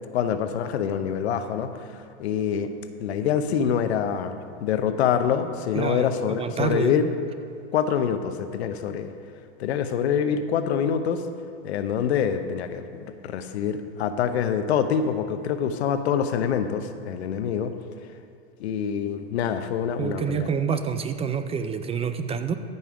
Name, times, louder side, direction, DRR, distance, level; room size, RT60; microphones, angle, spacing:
voice 1, 0.1-2.7 3.0-7.0 7.7-9.1 9.6-11.2 11.6-17.7 18.6-20.5, left 8 dB, 80° left, 9 dB, 0.9 m, -25 dB
voice 2, 5.7-7.1 20.0-22.6, right 7 dB, 20° right, 9 dB, 0.4 m, -28 dB
14.0 x 5.5 x 5.0 m, 2.6 s
hypercardioid pair, 115°, 32 cm